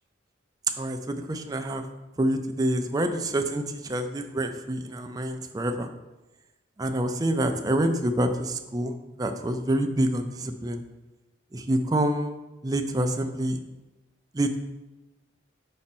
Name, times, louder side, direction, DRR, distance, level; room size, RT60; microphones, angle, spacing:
voice 1, 0.8-1.8 2.2-5.9 6.8-10.8 11.5-12.3 12.6-13.6 14.3-14.6, right 1 dB, 20° right, 6 dB, 0.4 m, -27 dB
6.3 x 4.2 x 4.3 m, 1.1 s
head